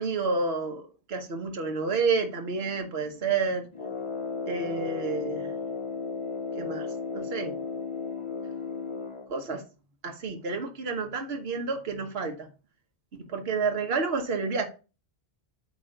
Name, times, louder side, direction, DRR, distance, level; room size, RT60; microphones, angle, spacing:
voice 1, 0.0-3.7 4.4-5.5 6.6-6.9 7.1-7.5 9.3-9.6 10.0-12.5 13.3-14.6, right 4 dB, 65° right, 1.3 m, -29 dB
Brass instrument, 3.7-9.3, left 4 dB, 35° left, 0.5 m, -34 dB
8.4 x 3.0 x 6.4 m
omnidirectional pair, 1.1 m